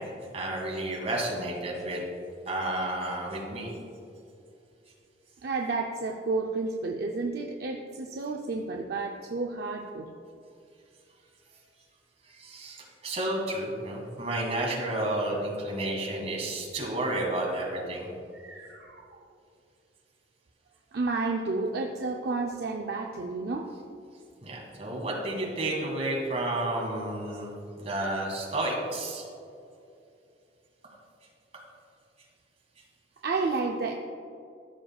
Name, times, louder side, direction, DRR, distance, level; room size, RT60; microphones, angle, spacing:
voice 1, 0.3-2.0 2.5-3.7 12.3-18.1 24.4-29.3, right 1 dB, 35° right, -2 dB, 1.9 m, -31 dB
voice 2, 5.4-10.1 18.3-19.2 20.9-23.7 33.2-33.9, right 3 dB, 60° right, 2 dB, 0.5 m, -31 dB
14.0 x 6.5 x 2.3 m, 2.5 s
head